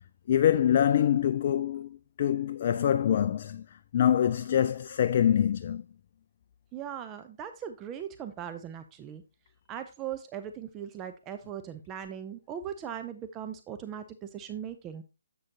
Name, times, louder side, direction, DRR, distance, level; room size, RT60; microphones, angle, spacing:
voice 1, 0.3-3.6 3.9-5.8, left 10 dB, 45° left, 0.3 m, -25 dB
voice 2, 6.7-9.2 9.7-14.0 14.3-15.0, right 9 dB, 20° right, 0.5 m, -39 dB
7.5 x 6.4 x 2.7 m
figure-of-eight pair, 145°, 0 cm